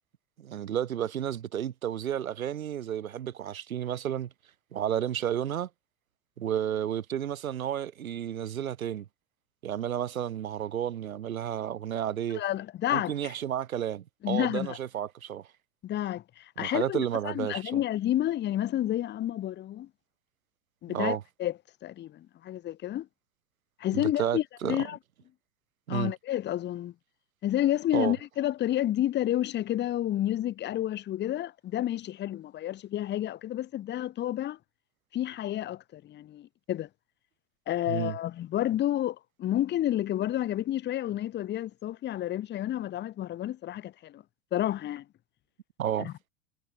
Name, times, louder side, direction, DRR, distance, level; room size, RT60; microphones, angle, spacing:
voice 1, 0.4-4.3 4.7-5.7 6.4-9.1 9.6-12.4 12.9-15.4 16.6-17.8 20.9-21.2 23.9-24.8 25.9-26.1 27.9-28.1 37.9-38.2 45.8-46.1, right 10 dB, 75° right, 1.9 m, -31 dB
voice 2, 12.3-13.3 14.2-14.8 15.8-19.9 20.8-21.5 21.8-23.1 23.8-25.0 25.9-26.9 27.4-34.6 35.1-36.9 37.7-44.2 44.5-45.0 46.0-46.1, left 12 dB, 25° left, 1.0 m, -30 dB
figure-of-eight pair, 90°, 42 cm